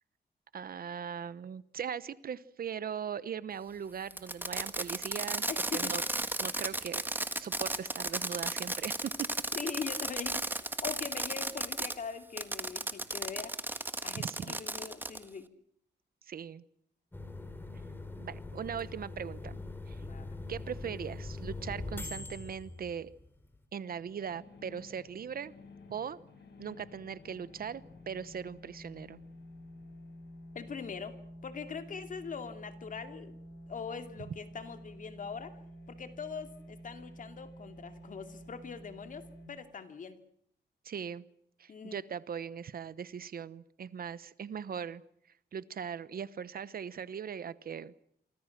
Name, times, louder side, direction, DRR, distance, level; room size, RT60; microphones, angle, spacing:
voice 1, 0.5-6.0 6.4-7.0 7.4-9.3 14.1-14.6 16.3-16.6 18.2-19.6 19.9-20.0 20.5-23.1 23.7-25.5 25.9-26.2 26.6-29.2 40.8-41.2 41.6-45.0 45.5-47.9, right 7 dB, 60° right, 17 dB, 1.0 m, -39 dB
Fireworks, 4.1-11.9 12.4-15.2, right 2 dB, 10° right, 1.5 m, -34 dB
voice 2, 5.5-6.0 9.6-10.4 10.8-13.5 14.0-15.5 20.0-20.3 30.5-31.2 31.4-33.4 33.7-35.5 35.9-40.2 41.7-42.0, left 6 dB, 50° left, 8 dB, 2.6 m, -42 dB
sound 1, 17.1-23.6, left 2 dB, 10° left, 3.2 m, -42 dB
sound 2, 23.9-39.5, equal, 75° left, 6.6 m, -51 dB
28.0 x 24.5 x 6.0 m, 0.67 s
wide cardioid pair, 160°, 18 cm